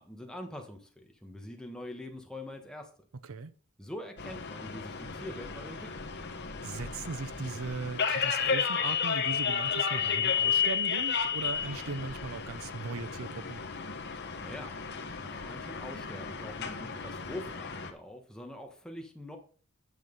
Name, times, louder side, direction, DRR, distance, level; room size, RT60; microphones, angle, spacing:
voice 1, 0.0-2.9 3.8-5.9 14.4-14.8 15.2-19.4, left 1 dB, 5° left, 1.5 m, -44 dB
sound 1, 4.2-17.9, left 6 dB, 55° left, 1.4 m, -33 dB
voice 2, 6.6-13.6, right 4 dB, 80° right, 0.6 m, -38 dB
9.5 x 5.9 x 5.4 m
head